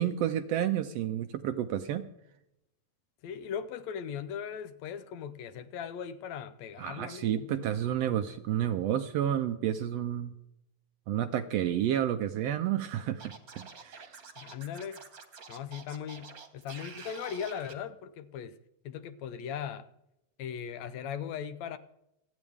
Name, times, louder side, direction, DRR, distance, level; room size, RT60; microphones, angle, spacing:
voice 1, 0.0-2.1 6.8-10.3 11.1-14.1, right 10 dB, 75° right, 9 dB, 1.6 m, -30 dB
voice 2, 3.2-7.7 14.4-15.0 15.5-18.6 18.9-19.9 20.4-21.8, left 8 dB, 75° left, 12 dB, 1.9 m, -39 dB
Scratching (performance technique), 13.2-17.7, right 5 dB, 40° right, 1.4 m, -48 dB
27.5 x 9.4 x 3.5 m, 0.84 s
omnidirectional pair, 3.4 m